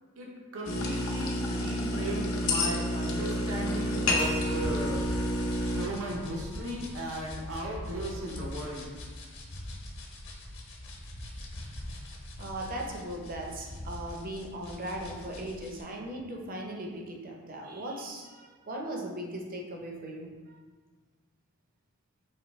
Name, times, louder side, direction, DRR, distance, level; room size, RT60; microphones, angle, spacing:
voice 1, 0.5-5.0 5.7-8.9, right 1 dB, 75° right, -2 dB, 0.8 m, -36 dB
sound 1, 0.6-5.8, left 1 dB, 75° left, 0.7 m, -29 dB
Keyboard (musical), 4.2-7.1, left 2 dB, 25° left, 0.4 m, -44 dB
sound 2, 4.4-15.8, left 1 dB, 55° left, 1.0 m, -43 dB
voice 2, 12.4-20.6, right 1 dB, 40° right, 0 dB, 0.6 m, -38 dB
4.9 x 3.1 x 3.1 m, 1.4 s
head